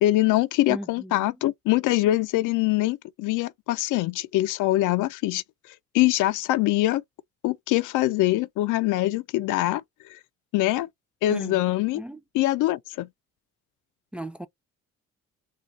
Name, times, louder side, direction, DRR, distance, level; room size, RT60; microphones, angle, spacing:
voice 1, 0.0-5.4 5.9-7.0 7.4-9.8 10.1-10.2 10.5-10.9 11.2-12.0 12.3-13.1, left 16 dB, 85° left, 0.5 m, -23 dB
voice 2, 0.7-1.4 11.3-11.6 11.9-12.2 14.1-14.5, right 1 dB, 5° right, 0.4 m, -36 dB
2.6 x 2.3 x 4.0 m
cardioid pair, 90°, 30 cm